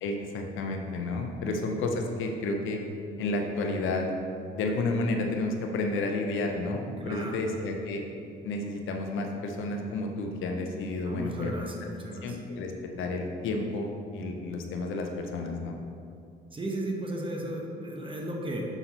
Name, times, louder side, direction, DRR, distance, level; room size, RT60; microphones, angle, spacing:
voice 1, 0.0-2.8 3.2-4.1 4.5-8.0 8.4-11.5 11.8-12.7 13.0-15.8, left 2 dB, 85° left, 3 dB, 0.7 m, -31 dB
voice 2, 7.0-7.4 11.0-12.4 16.5-18.7, right 1 dB, 25° right, -1 dB, 1.1 m, -35 dB
6.9 x 5.6 x 3.0 m, 2.4 s
cardioid pair, 90°, 20 cm